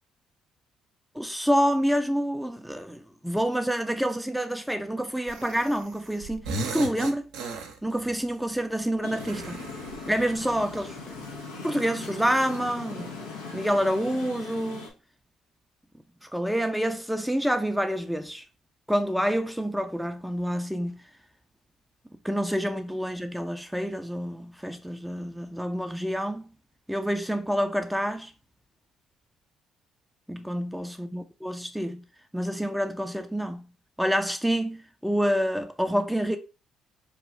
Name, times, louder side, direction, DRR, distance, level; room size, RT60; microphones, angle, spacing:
voice 1, 1.1-6.4 6.7-7.2 7.8-9.6 10.0-11.2 11.6-13.2 13.5-14.9 16.2-18.4 18.9-21.0 22.2-26.5 26.9-28.3 30.3-32.0 32.3-33.6 34.0-36.4, equal, ahead, 0.5 m, -27 dB
sound 1, 5.3-6.0 6.2-8.2 9.2-10.7, right 3 dB, 75° right, 0.6 m, -36 dB
sound 2, 9.0-14.9, left 4 dB, 90° left, 0.7 m, -40 dB
3.0 x 2.3 x 4.2 m
hypercardioid pair, 50°, 0 cm